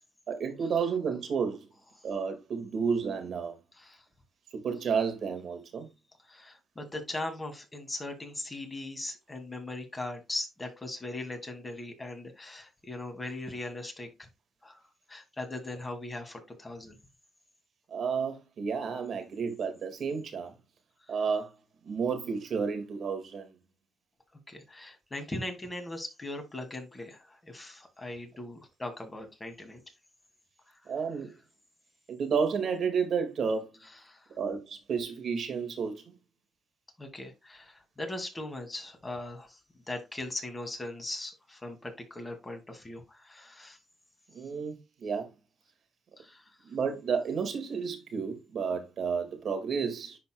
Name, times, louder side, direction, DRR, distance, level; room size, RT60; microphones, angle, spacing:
voice 1, 0.3-1.7 2.0-3.5 4.5-5.9 17.9-20.5 21.1-21.5 21.8-23.5 30.9-31.3 32.1-33.7 34.4-36.0 44.3-45.3 46.7-50.2, right 6 dB, 60° right, 1.9 m, -31 dB
voice 2, 6.3-14.3 14.6-14.8 15.1-17.0 24.5-29.8 34.0-34.3 37.0-39.6 39.9-43.8 46.2-46.4, left 2 dB, 20° left, 2.3 m, -39 dB
11.0 x 4.2 x 2.2 m
cardioid pair, 90°, 0 cm